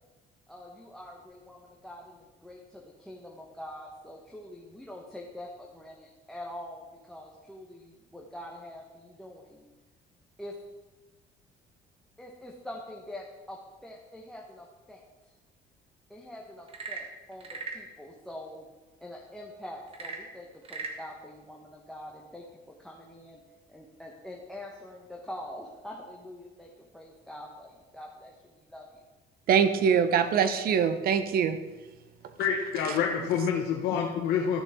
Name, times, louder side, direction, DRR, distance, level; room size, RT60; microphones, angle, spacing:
voice 1, 0.5-9.7 10.4-10.5 12.2-15.0 16.1-18.7 19.0-23.4 23.7-29.0, left 1 dB, 5° left, -1 dB, 1.2 m, -45 dB
Frog / Percussion / Wood, 16.6-17.9 19.9-21.0, right 4 dB, 35° right, 1.5 m, -38 dB
voice 2, 29.5-31.6, right 7 dB, 65° right, 11 dB, 0.9 m, -23 dB
voice 3, 32.4-34.6, left 7 dB, 80° left, 1 dB, 0.9 m, -27 dB
13.0 x 6.6 x 3.7 m, 1.2 s
cardioid pair, 110°, 17 cm